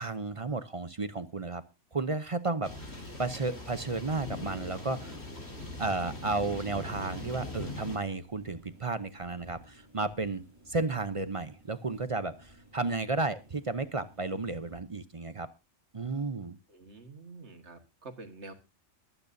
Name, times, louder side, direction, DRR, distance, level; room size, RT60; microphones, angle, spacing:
voice 1, 0.0-1.6 1.9-5.2 5.8-15.5 15.9-16.6, right 3 dB, 35° right, 12 dB, 0.6 m, -33 dB
sound 1, 2.6-8.0, left 2 dB, 60° left, 4.4 m, -41 dB
sound 2, 5.8-14.8, right 1 dB, 15° right, 3.2 m, -58 dB
voice 2, 16.7-18.5, right 3 dB, 65° right, 7 dB, 2.0 m, -47 dB
22.0 x 9.0 x 2.6 m, 0.28 s
omnidirectional pair, 1.2 m